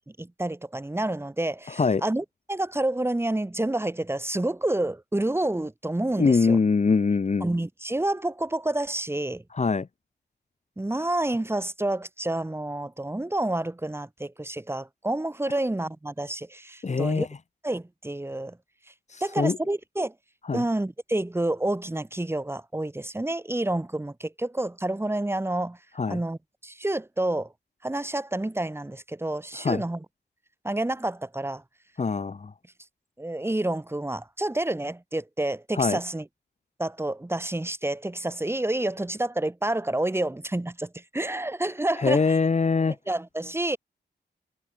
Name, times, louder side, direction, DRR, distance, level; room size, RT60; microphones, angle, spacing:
voice 1, 0.2-6.6 7.4-9.4 10.8-17.3 17.6-18.6 19.2-20.1 20.5-25.8 26.1-27.5 27.8-30.0 30.6-31.6 33.2-36.2 36.8-42.2 42.9-43.8, right 1 dB, 15° right, 3.7 m, -29 dB
voice 2, 1.7-2.0 6.2-7.5 9.5-9.9 16.8-17.3 19.1-19.6 20.5-20.6 26.0-26.2 29.5-29.8 32.0-32.5 35.7-36.0 42.0-43.0, left 4 dB, 40° left, 1.9 m, -23 dB
wide cardioid pair, 135°, 18 cm